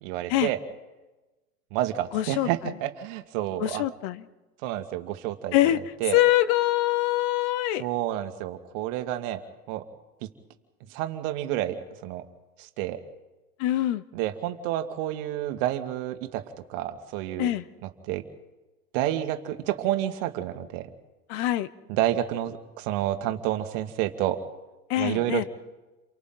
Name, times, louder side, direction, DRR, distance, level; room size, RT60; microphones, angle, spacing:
voice 1, 0.0-0.6 1.7-3.8 4.6-6.2 7.8-9.4 9.7-9.8 10.9-12.3 12.6-13.0 14.1-16.4 16.7-17.5 17.8-18.2 18.9-20.9 21.9-24.4 25.0-25.5, right 13 dB, 50° right, 8 dB, 1.9 m, -29 dB
voice 2, 2.1-2.5 3.6-4.2 5.5-5.8 6.1-7.8 13.6-14.0 17.4-17.6 21.3-21.7 24.9-25.4, left 15 dB, 45° left, 16 dB, 0.9 m, -24 dB
30.0 x 24.0 x 3.9 m, 1.1 s
hypercardioid pair, 110°, 47 cm